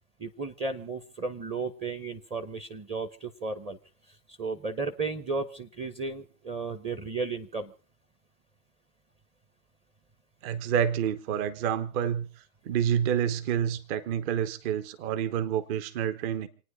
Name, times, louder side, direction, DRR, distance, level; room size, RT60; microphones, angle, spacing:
voice 1, 0.2-3.8 4.4-7.7, right 4 dB, 15° right, 0.8 m, -34 dB
voice 2, 10.4-12.3 12.6-16.5, right 9 dB, 40° right, 1.2 m, -28 dB
28.0 x 9.5 x 4.9 m
hypercardioid pair, 130°, 48 cm